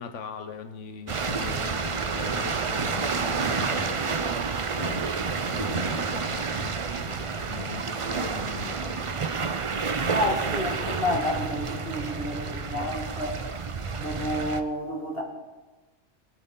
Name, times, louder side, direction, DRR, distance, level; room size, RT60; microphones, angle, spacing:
voice 1, 0.0-4.5 4.7-9.0, left 6 dB, 90° left, 1.2 m, -40 dB
sound 1, 1.1-14.6, right 5 dB, 40° right, 0.5 m, -29 dB
voice 2, 10.0-13.4 14.0-15.2, left 1 dB, 55° left, 2.2 m, -30 dB
21.5 x 8.3 x 3.8 m
omnidirectional pair, 1.2 m